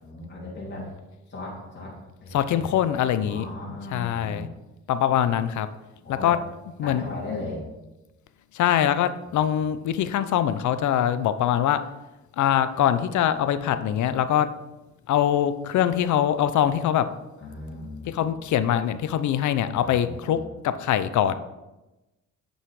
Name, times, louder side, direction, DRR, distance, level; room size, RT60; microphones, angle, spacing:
voice 1, 0.0-0.9 1.3-1.9 2.2-2.7 3.2-4.4 6.0-6.4 6.8-7.6 9.3-9.5 17.4-18.3 19.8-20.5, left 2 dB, 35° left, -5 dB, 2.9 m, -37 dB
voice 2, 2.3-3.5 3.9-4.5 4.9-5.7 6.2-6.4 6.8-7.0 8.5-11.8 12.4-14.5 15.1-17.1 18.1-20.4 20.6-21.3, left 10 dB, 70° left, 12 dB, 0.7 m, -23 dB
8.9 x 5.6 x 4.8 m, 1.0 s
cardioid pair, 90°, 30 cm